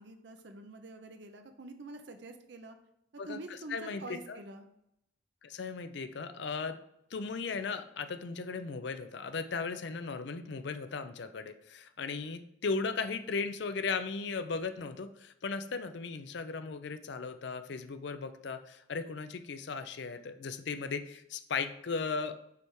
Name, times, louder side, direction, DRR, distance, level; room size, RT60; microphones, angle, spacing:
voice 1, 0.0-2.8 3.3-4.6, right 2 dB, 60° right, 6 dB, 0.6 m, -46 dB
voice 2, 3.2-4.4 5.4-6.8 7.1-22.3, left 4 dB, 60° left, 10 dB, 0.5 m, -37 dB
6.9 x 3.4 x 4.7 m, 0.79 s
head